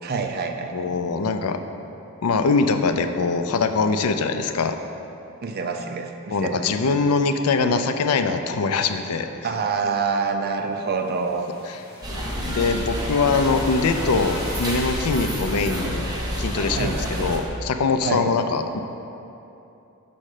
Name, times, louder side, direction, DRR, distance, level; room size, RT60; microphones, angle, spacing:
voice 1, 0.0-0.9 5.4-6.6 9.4-11.5 16.7-17.4 18.0-18.3, right 5 dB, 45° right, 4 dB, 0.5 m, -27 dB
voice 2, 0.7-1.6 2.2-4.8 6.3-9.3 12.1-16.0 16.4-18.8, left 4 dB, 85° left, 8 dB, 0.4 m, -23 dB
sound 1, 10.8-15.8, left 1 dB, 45° left, 1.6 m, -39 dB
sound 2, 12.0-17.4, equal, 20° right, 0.9 m, -28 dB
6.3 x 4.3 x 6.5 m, 2.9 s
head